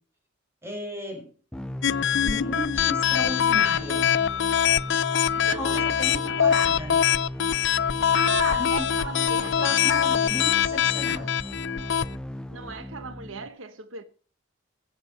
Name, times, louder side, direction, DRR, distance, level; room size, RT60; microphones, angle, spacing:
voice 1, 0.6-1.3 2.2-4.1 5.3-7.0 8.6-8.8 9.4-11.3, equal, 15° right, 6.2 m, -35 dB
sound 1, 1.5-13.5, left 1 dB, 5° left, 0.7 m, -37 dB
sound 2, 1.8-12.1, left 9 dB, 65° left, 0.6 m, -23 dB
voice 2, 5.4-6.4 8.1-9.6 12.5-14.0, right 5 dB, 75° right, 1.1 m, -36 dB
15.5 x 9.6 x 5.6 m
head